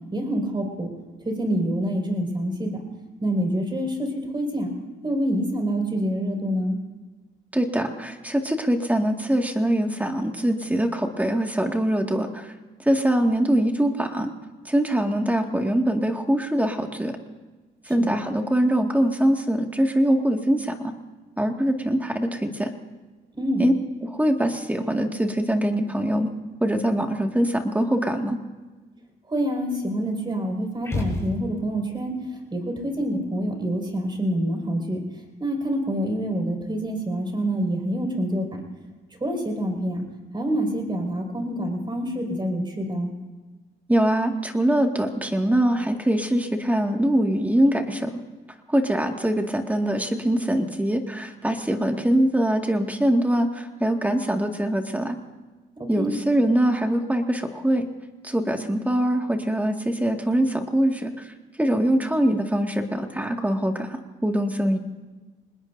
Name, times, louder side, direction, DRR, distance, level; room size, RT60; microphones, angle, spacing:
voice 1, 0.1-0.9 1.2-2.9 3.2-4.7 5.0-6.8 18.0-18.1 23.3-23.7 29.3-38.6 39.2-40.0 40.3-43.1 55.8-56.1, right 1 dB, 25° right, 2 dB, 5.5 m, -26 dB
voice 2, 7.5-12.5 12.8-14.3 14.7-17.1 17.9-20.9 21.4-22.7 23.6-23.7 24.0-26.3 26.6-28.4 43.9-48.1 48.7-55.2 55.9-57.9 58.2-64.8, right 1 dB, 10° right, 3 dB, 2.0 m, -23 dB
sound 1, 30.8-31.9, left 2 dB, 15° left, 7.2 m, -30 dB
26.0 x 20.5 x 2.7 m, 1.3 s
cardioid pair, 90°, 20 cm